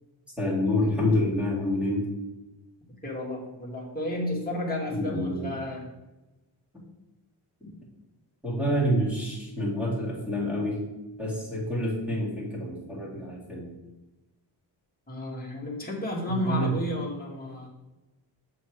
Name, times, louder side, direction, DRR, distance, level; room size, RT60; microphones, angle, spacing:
voice 1, 0.4-2.0 4.9-5.5 8.4-10.8 11.2-13.7 16.3-16.8, left 1 dB, ahead, -6 dB, 2.5 m, -27 dB
voice 2, 3.0-5.9 15.1-17.7, left 1 dB, 20° left, -3 dB, 1.7 m, -32 dB
7.3 x 4.3 x 4.6 m, 1.0 s
wide cardioid pair, 145°, 49 cm